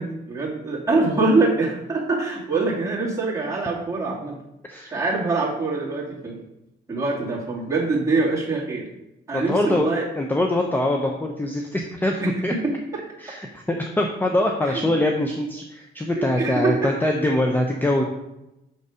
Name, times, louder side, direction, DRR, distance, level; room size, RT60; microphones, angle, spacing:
voice 1, 0.0-4.4 4.9-6.4 6.9-8.8 9.3-10.1 12.2-13.0 14.6-14.9 16.2-16.9, right 3 dB, 15° right, -6 dB, 2.5 m, -24 dB
voice 2, 4.7-5.0 9.3-12.5 13.2-18.0, left 1 dB, 10° left, 2 dB, 0.7 m, -23 dB
6.7 x 4.1 x 4.9 m, 0.91 s
cardioid pair, 90°, 20 cm